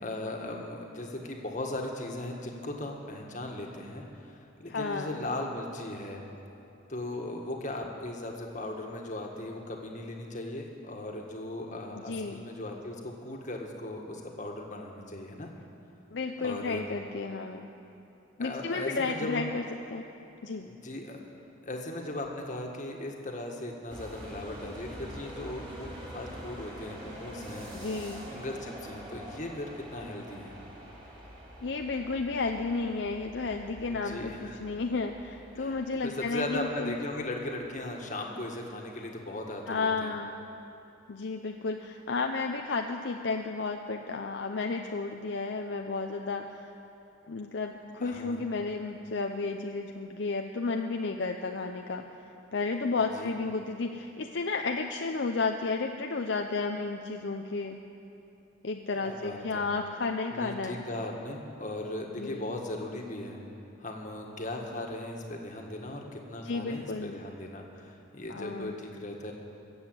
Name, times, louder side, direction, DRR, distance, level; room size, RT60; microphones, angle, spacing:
voice 1, 0.0-6.2 6.9-15.5 16.4-16.8 18.4-19.5 20.6-21.2 21.6-27.7 28.3-30.6 33.9-34.6 35.6-40.2 48.0-48.4 53.1-53.3 59.0-59.7 60.3-63.4 63.8-69.3, left 1 dB, 40° left, 1 dB, 1.7 m, -38 dB
voice 2, 4.7-5.2 12.1-12.4 16.1-17.7 18.4-19.6 19.9-20.1 20.4-20.7 27.7-28.3 31.6-37.0 39.7-40.3 41.1-46.7 47.3-52.1 52.5-57.8 58.6-60.8 62.2-62.5 66.4-67.2 68.3-68.8, left 4 dB, 65° left, 4 dB, 0.6 m, -32 dB
sound 1, 23.9-37.7, equal, 25° right, 3.0 m, -45 dB
21.5 x 8.0 x 8.0 m, 2.9 s
head